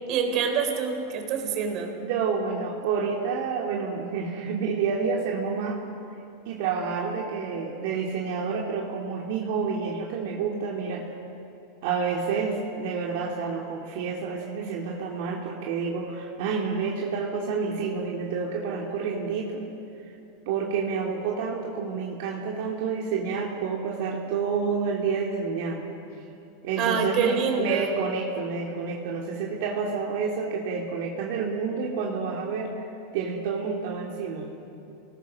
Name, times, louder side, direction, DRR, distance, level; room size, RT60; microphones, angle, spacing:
voice 1, 0.1-1.9 26.8-27.9, right 6 dB, 40° right, 5 dB, 3.7 m, -26 dB
voice 2, 2.0-5.8 6.5-11.1 11.8-19.6 20.5-25.9 26.6-32.7 33.1-34.5, right 5 dB, 60° right, -1 dB, 2.6 m, -29 dB
28.5 x 19.5 x 6.4 m, 2.9 s
supercardioid pair, 145°, 0 cm